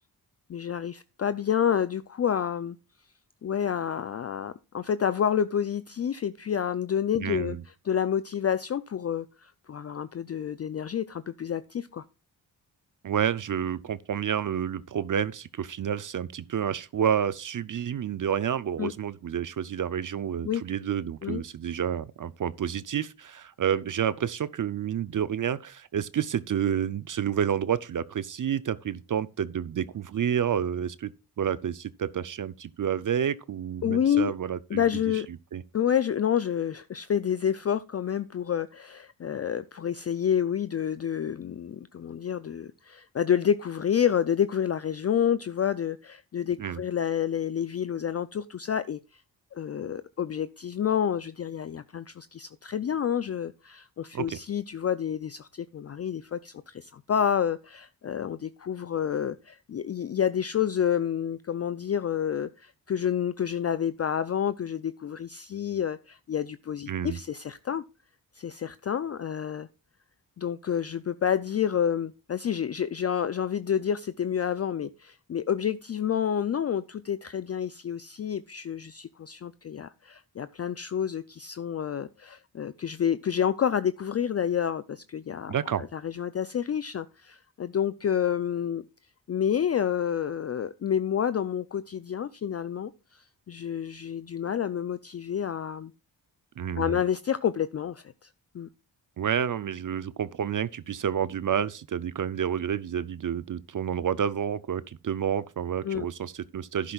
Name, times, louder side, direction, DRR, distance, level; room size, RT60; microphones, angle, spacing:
voice 1, 0.5-2.8 3.4-7.6 7.8-12.0 18.8-18.9 20.4-20.6 21.2-21.4 33.8-34.3 34.7-35.3 35.7-49.0 49.5-67.8 68.4-69.7 70.4-88.8 89.3-95.9 96.8-98.3 98.5-98.7 105.8-106.1, left 8 dB, 40° left, 0.4 m, -29 dB
voice 2, 7.2-7.6 13.0-31.1 31.4-34.8 35.5-35.6 46.6-46.8 54.1-54.4 66.9-67.2 85.5-85.9 96.6-97.0 99.2-106.9, right 8 dB, 50° right, 0.5 m, -29 dB
11.5 x 10.0 x 2.4 m
cardioid pair, 65°, 42 cm